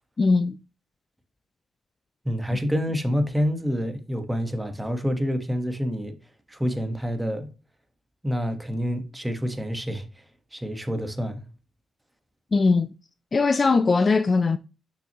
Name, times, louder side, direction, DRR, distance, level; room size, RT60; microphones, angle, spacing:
voice 1, 0.2-0.6 12.5-12.9 13.3-14.6, left 4 dB, 35° left, 0.4 m, -20 dB
voice 2, 2.2-6.1 6.5-7.5 8.2-10.1 10.5-11.4, equal, 10° right, 1.3 m, -27 dB
6.8 x 6.0 x 2.9 m
cardioid pair, 95°, 0 cm